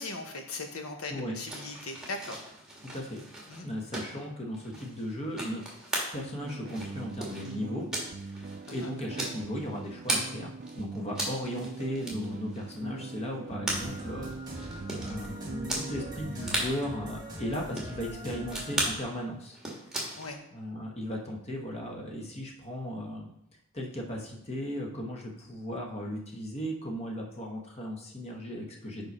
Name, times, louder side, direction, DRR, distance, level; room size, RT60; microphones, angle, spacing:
voice 1, 0.0-2.4 3.5-3.7 8.7-8.9 20.2-20.4, left 3 dB, 80° left, 4 dB, 1.1 m, -39 dB
sound 1, 1.5-10.3 10.6-15.3 15.7-15.8 16.1-16.2 16.4-16.7 17.3-18.0 18.5-19.0 19.4-20.3, right 1 dB, 5° right, 1.5 m, -36 dB
voice 2, 2.8-3.2 3.6-5.7 6.1-7.9 8.2-14.7 15.0-19.6 20.5-23.3 23.7-29.1, equal, 30° left, 1 dB, 1.1 m, -36 dB
sound 2, 6.1-16.7, right 3 dB, 40° right, 0.3 m, -42 dB
sound 3, 13.7-18.9, equal, 20° right, 1.5 m, -42 dB
5.5 x 4.6 x 5.3 m, 0.82 s
head